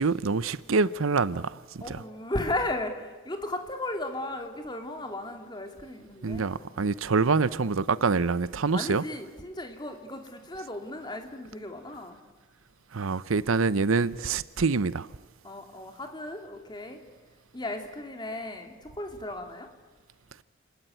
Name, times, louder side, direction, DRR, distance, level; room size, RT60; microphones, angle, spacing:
voice 1, 0.0-2.0 6.2-9.0 12.9-15.1, right 4 dB, 85° right, 0.7 m, -26 dB
voice 2, 1.8-6.7 8.7-12.2 15.4-17.0 17.5-19.7, left 1 dB, 20° left, 2.8 m, -35 dB
29.0 x 20.5 x 9.1 m
head